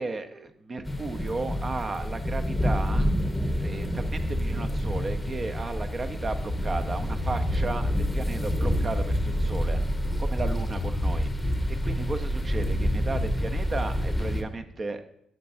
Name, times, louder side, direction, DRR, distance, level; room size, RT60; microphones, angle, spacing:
voice 1, 0.0-3.1 3.6-9.8 10.2-15.0, right 3 dB, 35° right, 8 dB, 0.6 m, -34 dB
sound 1, 0.8-14.4, equal, 10° left, 0.8 m, -27 dB
10.5 x 5.7 x 2.6 m, 0.74 s
cardioid pair, 90°, 0 cm